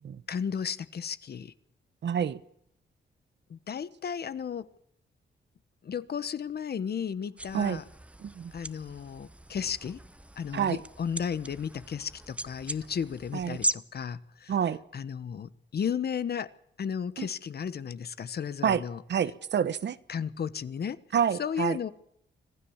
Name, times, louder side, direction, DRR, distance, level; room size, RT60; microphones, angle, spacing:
voice 1, 0.3-1.5 3.5-4.7 5.8-7.8 8.5-10.0 10.4-14.5 14.9-16.5 16.8-19.0 20.1-21.0 21.4-21.9, left 7 dB, 55° left, 1.2 m, -34 dB
voice 2, 2.0-2.4 7.5-7.8 8.2-8.5 10.5-10.8 13.3-13.6 14.5-14.8 17.2-17.3 18.6-18.8 19.1-20.0 21.1-21.8, right 8 dB, 65° right, 1.2 m, -28 dB
sound 1, 7.4-13.7, right 1 dB, 5° right, 0.8 m, -38 dB
25.5 x 16.0 x 7.3 m
wide cardioid pair, 125°, 20 cm